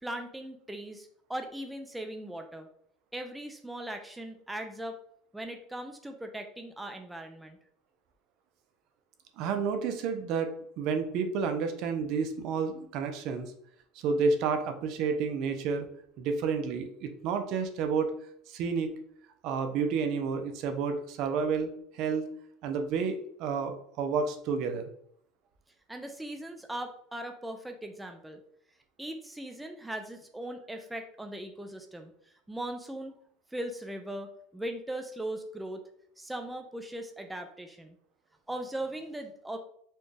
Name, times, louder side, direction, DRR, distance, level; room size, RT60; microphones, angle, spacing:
voice 1, 0.0-2.7 3.1-4.9 5.3-7.6 25.9-28.4 29.0-32.1 32.5-33.1 33.5-35.8 36.2-38.0 38.5-39.6, right 1 dB, 5° right, 5 dB, 0.4 m, -39 dB
voice 2, 9.4-13.5 13.9-15.9 16.2-18.1 18.5-19.0 19.4-22.3 22.6-24.9, right 5 dB, 60° right, 7 dB, 0.5 m, -30 dB
4.3 x 2.3 x 3.2 m, 0.67 s
supercardioid pair, 125°, 0 cm